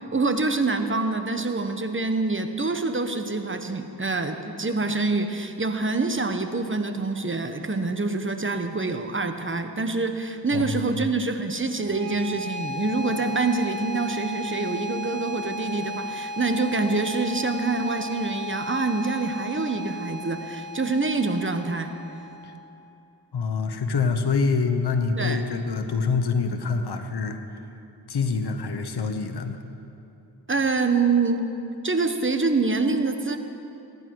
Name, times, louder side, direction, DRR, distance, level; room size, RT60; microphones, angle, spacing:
voice 1, 0.1-21.9 25.2-25.4 30.5-31.4 31.8-33.4, right 3 dB, 30° right, 7 dB, 1.2 m, -26 dB
voice 2, 10.5-11.0 22.4-22.5 23.3-27.4 28.1-29.6, left 4 dB, 70° left, 7 dB, 1.2 m, -26 dB
sound 1, 11.7-22.7, left 1 dB, 50° right, 2.7 m, -35 dB
21.5 x 11.0 x 4.7 m, 2.8 s
cardioid pair, 55°, 41 cm